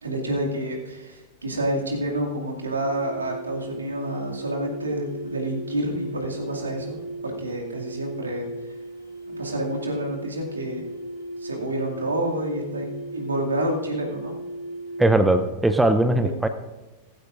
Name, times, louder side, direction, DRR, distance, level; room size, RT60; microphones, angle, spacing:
voice 1, 0.0-8.5 9.3-10.8 11.4-14.3 16.2-16.3, right 1 dB, 75° right, -1 dB, 2.4 m, -29 dB
sound 1, 2.7-15.5, right 1 dB, 80° left, 2.4 m, -36 dB
voice 2, 15.0-16.5, right 2 dB, 5° right, 9 dB, 0.7 m, -19 dB
18.0 x 15.0 x 2.6 m, 1.2 s
figure-of-eight pair, 90°, 0 cm